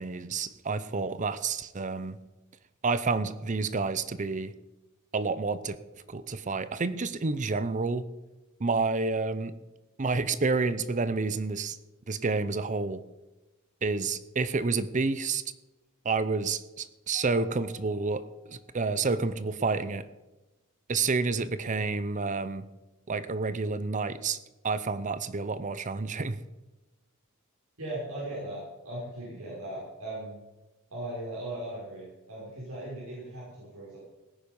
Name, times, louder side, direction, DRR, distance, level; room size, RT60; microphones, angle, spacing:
voice 1, 0.0-2.2 2.8-4.5 5.1-5.8 6.1-8.1 8.6-9.5 10.0-11.8 12.1-13.0 13.8-15.4 16.0-20.1 20.9-22.7 23.1-24.4 24.6-26.4, right 4 dB, 35° right, 14 dB, 0.6 m, -29 dB
Keyboard (musical), 17.1-19.4, left 4 dB, 5° left, 3.8 m, -58 dB
voice 2, 27.8-30.3 30.9-34.0, right 1 dB, 80° right, -7 dB, 5.7 m, -38 dB
17.0 x 9.9 x 5.4 m, 1.1 s
head